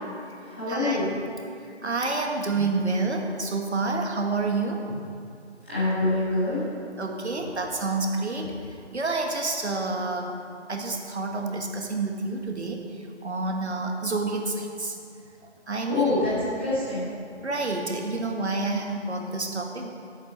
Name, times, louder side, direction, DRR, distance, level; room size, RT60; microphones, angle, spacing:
voice 1, 0.4-1.1 5.6-6.6 15.9-17.1, left 2 dB, 10° left, -13 dB, 1.6 m, -25 dB
voice 2, 1.8-5.1 7.0-8.5 8.9-10.4 10.7-12.8 13.2-14.9 15.7-16.1 17.4-19.9, right 3 dB, 70° right, 2 dB, 1.6 m, -28 dB
12.5 x 8.1 x 4.4 m, 2.4 s
figure-of-eight pair, 175°, 34 cm